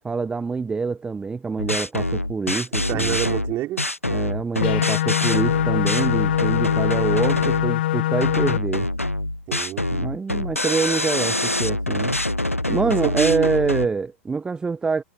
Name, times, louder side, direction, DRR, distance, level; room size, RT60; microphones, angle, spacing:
voice 1, 0.0-3.2 4.1-8.9 9.9-12.2 12.7-15.0, right 4 dB, 10° right, 1.1 m, -26 dB
sound 1, 1.6-7.7 8.2-13.9, left 1 dB, 90° left, 0.8 m, -25 dB
voice 2, 2.9-3.9 9.5-9.9 12.8-13.5, right 15 dB, 30° right, 3.6 m, -27 dB
sound 2, 4.6-8.6, left 14 dB, 55° left, 1.5 m, -23 dB
figure-of-eight pair, 100°, 7 cm